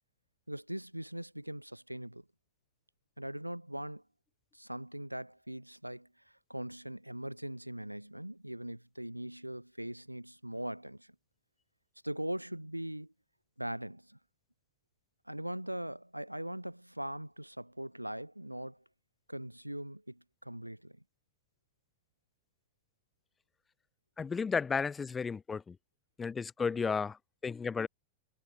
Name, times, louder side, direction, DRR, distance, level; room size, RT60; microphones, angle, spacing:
voice 1, 0.5-2.2 3.2-4.0 4.5-6.1 6.5-11.1 12.0-13.1 13.6-14.2 15.3-18.8 19.3-21.0, right 1 dB, 90° right, 2.6 m, -41 dB
voice 2, 24.2-25.8 26.2-27.9, left 5 dB, 15° left, 0.6 m, -33 dB
figure-of-eight pair, 90°, 0 cm